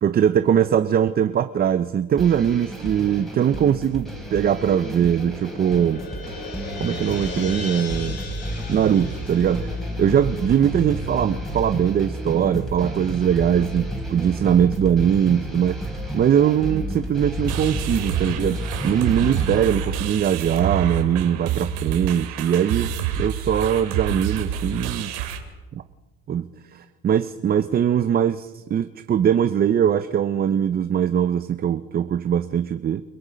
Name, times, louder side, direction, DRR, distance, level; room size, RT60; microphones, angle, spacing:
voice 1, 0.0-6.0 6.8-8.2 8.7-25.1 26.3-33.0, right 9 dB, 25° right, 11 dB, 0.5 m, -21 dB
sound 1, 2.2-19.6, equal, ahead, 3.5 m, -31 dB
sound 2, 4.7-11.2, left 3 dB, 40° left, 7.2 m, -38 dB
sound 3, 17.5-25.4, right 8 dB, 80° right, 3.0 m, -27 dB
29.0 x 18.0 x 5.1 m, 1.3 s
cardioid pair, 135°, 37 cm